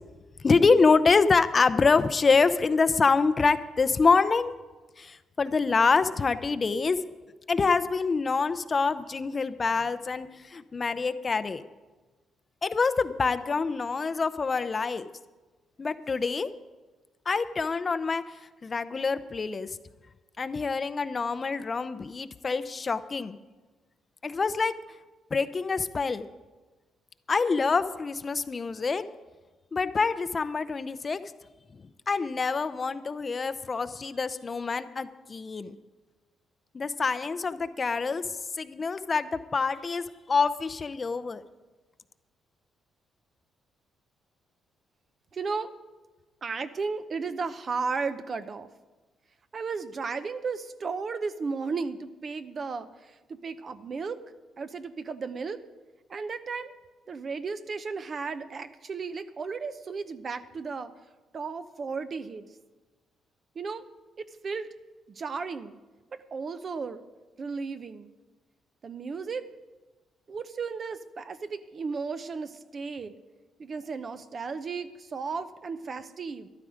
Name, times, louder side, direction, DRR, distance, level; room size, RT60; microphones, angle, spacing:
voice 1, 0.4-4.5 5.0-7.0 7.5-11.6 12.6-15.1 15.8-16.5 17.3-18.2 18.6-19.8 20.4-23.4 24.2-24.7 25.3-26.3 27.3-29.0 29.7-31.2 32.1-35.8 36.7-38.2 38.6-41.4, left 4 dB, 35° left, 12 dB, 0.6 m, -26 dB
voice 2, 45.3-45.7 46.4-48.7 49.5-54.2 54.6-55.6 56.1-56.7 57.1-60.9 61.3-62.5 63.5-63.9 64.2-64.7 65.1-65.8 66.1-67.0 67.4-68.1 68.8-69.5 70.3-73.1 73.6-76.5, right 4 dB, 45° right, 11 dB, 0.7 m, -34 dB
13.0 x 12.0 x 5.0 m, 1.2 s
cardioid pair, 90°, 0 cm